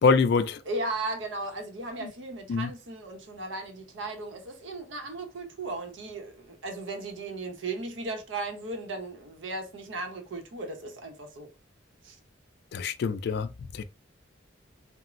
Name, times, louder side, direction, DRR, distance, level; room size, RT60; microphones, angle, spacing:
voice 1, 0.0-0.6 2.0-2.1 2.5-2.7 12.7-13.8, left 4 dB, 60° left, 0.3 m, -25 dB
voice 2, 0.6-11.5 12.0-12.2, right 2 dB, 85° right, 0.7 m, -36 dB
3.0 x 2.0 x 2.4 m
head